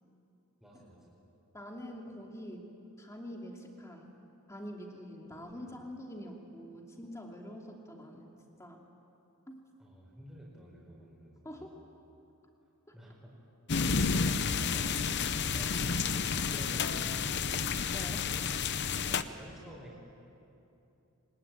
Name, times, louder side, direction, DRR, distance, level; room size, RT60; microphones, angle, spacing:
voice 1, 0.6-1.1 5.5-5.7 9.8-11.3 11.6-11.7 12.9-13.3 14.1-15.1 15.5-17.8 19.1-20.0, equal, ahead, -5 dB, 4.6 m, -50 dB
voice 2, 1.5-2.7 3.0-4.2 4.5-8.3 8.6-8.8 9.5-9.6 11.4-11.8 12.9-13.0 17.9-18.5, equal, 15° left, 0 dB, 2.7 m, -45 dB
sound 1, 13.7-19.2, left 5 dB, 50° left, 0.8 m, -31 dB
24.0 x 21.0 x 9.1 m, 2.8 s
head